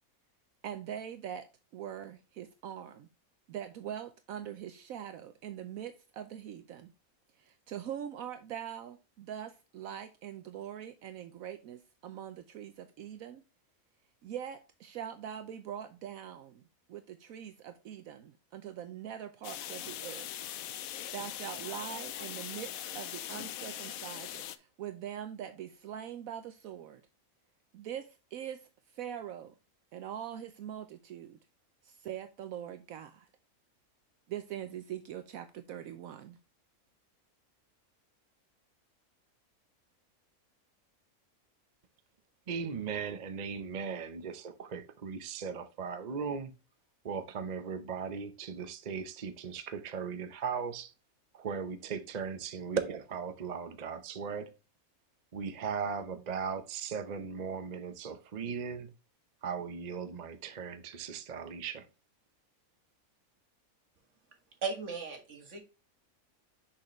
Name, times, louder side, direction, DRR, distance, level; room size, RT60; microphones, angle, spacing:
voice 1, 0.6-1.4 1.7-3.1 3.5-6.9 7.4-13.4 14.2-20.3 20.9-27.0 27.7-29.5 29.9-31.4 31.8-33.3 34.3-36.4, right 10 dB, 75° right, 1.1 m, -43 dB
sound 1, 19.4-24.6, left 11 dB, 80° left, 1.0 m, -41 dB
voice 2, 42.5-46.5 47.0-50.9 51.3-54.5 55.3-58.9 59.4-61.9, right 6 dB, 40° right, 0.7 m, -37 dB
voice 3, 64.6-65.6, right 5 dB, 55° right, 2.0 m, -36 dB
6.5 x 5.8 x 3.0 m
omnidirectional pair, 1.5 m